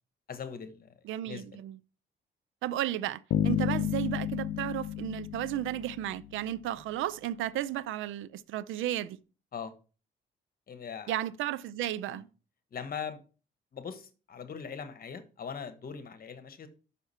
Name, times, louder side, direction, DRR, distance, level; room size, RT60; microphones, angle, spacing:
voice 1, 0.3-0.9 1.2-1.6 9.5-9.7 10.7-11.2 12.1-12.2 12.7-13.2 13.7-16.7, left 6 dB, 50° left, 1.2 m, -41 dB
voice 2, 1.0-1.8 2.6-9.2 11.1-12.3, right 12 dB, 80° right, 0.5 m, -34 dB
Bass guitar, 3.3-6.4, left 11 dB, 75° left, 0.5 m, -31 dB
5.8 x 5.8 x 5.6 m
cardioid pair, 90°, 20 cm